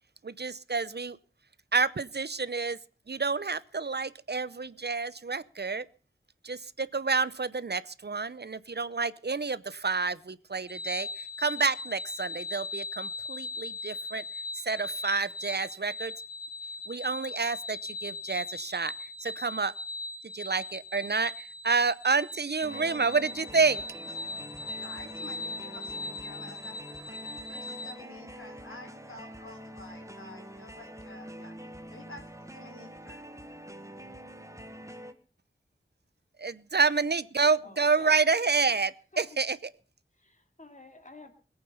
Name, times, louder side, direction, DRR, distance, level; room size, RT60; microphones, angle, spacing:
voice 1, 0.2-1.2 1.7-2.8 3.1-5.8 6.4-14.2 14.6-16.1 16.9-19.7 20.3-23.8 36.4-38.9 39.2-39.6, right 4 dB, 55° right, 17 dB, 0.7 m, -29 dB
sound 1, 10.7-27.9, left 3 dB, 50° left, 3.9 m, -39 dB
sound 2, 22.6-35.1, equal, 15° right, 1.6 m, -45 dB
voice 2, 24.8-31.5 31.9-33.2, left 2 dB, 80° left, 4 dB, 3.7 m, -50 dB
voice 3, 37.6-38.6 39.1-39.4 40.2-41.3, left 2 dB, 35° left, 6 dB, 2.5 m, -50 dB
21.0 x 8.9 x 5.5 m, 0.40 s
wide cardioid pair, 60°, 21 cm